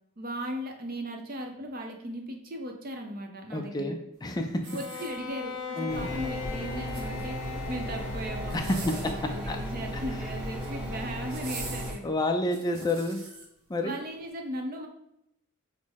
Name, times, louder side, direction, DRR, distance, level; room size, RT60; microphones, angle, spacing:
voice 1, 0.2-4.0 4.7-12.1 13.8-14.9, equal, 40° right, 3 dB, 0.7 m, -37 dB
voice 2, 3.5-4.6 5.8-6.1 8.5-8.8 9.5-9.6 9.9-10.0 12.0-13.2 13.7-14.0, left 1 dB, 20° left, 4 dB, 0.3 m, -29 dB
Bowed string instrument, 4.6-9.0, left 6 dB, 75° left, 0.6 m, -39 dB
sound 1, 4.6-5.6 6.7-7.5 8.4-9.2 10.3-10.8 11.3-13.5 14.0-14.2, right 4 dB, 65° right, 0.9 m, -44 dB
sound 2, 5.9-11.9, equal, 5° right, 0.9 m, -35 dB
6.1 x 2.1 x 3.5 m, 0.81 s
head